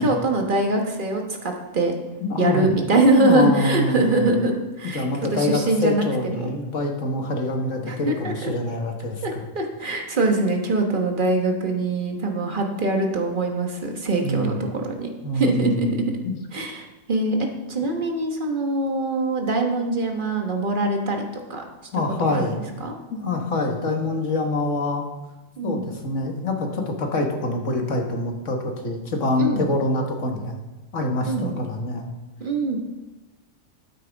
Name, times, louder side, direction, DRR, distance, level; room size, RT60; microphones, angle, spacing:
voice 1, 0.0-1.9 2.4-5.0 5.3-6.5 7.8-8.5 9.2-16.1 16.5-21.6 21.9-22.9 25.6-25.8 29.4-29.7 31.2-31.6 32.4-32.8, right 2 dB, 40° right, 2 dB, 1.5 m, -23 dB
voice 2, 2.2-2.7 3.2-4.3 4.9-9.4 14.2-14.5 15.2-16.0 16.2-16.4 21.9-22.6 23.1-25.0 25.6-30.6 30.9-32.1, left 2 dB, 65° left, 2 dB, 1.8 m, -25 dB
13.0 x 9.1 x 3.5 m, 1.1 s
omnidirectional pair, 1.4 m